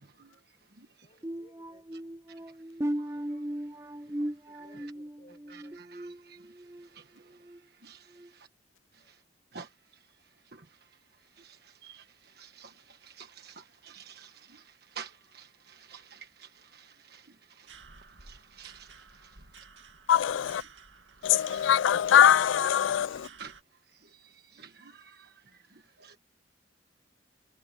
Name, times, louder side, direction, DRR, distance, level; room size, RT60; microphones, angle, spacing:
voice 1, 0.0-1.1 1.9-2.0 2.3-2.4 3.0-3.6 4.1-4.9 5.5-8.5 8.9-9.2 9.5-17.8 18.2-19.4 21.2-21.3 22.7-23.5 23.9-26.2, right 6 dB, 55° right, 1.4 m, -52 dB
voice 2, 1.0-2.0 4.5-5.8 8.1-8.2 9.0-9.1, left 1 dB, 40° left, 6.3 m, -61 dB
sound 1, 1.2-6.9 7.3-7.6 8.1-8.3, right 1 dB, 15° right, 0.5 m, -37 dB
sound 2, 17.7-23.6, right 5 dB, 75° right, 2.4 m, -53 dB
voice 3, 20.1-20.6 21.2-23.3, left 9 dB, 80° left, 0.3 m, -22 dB
head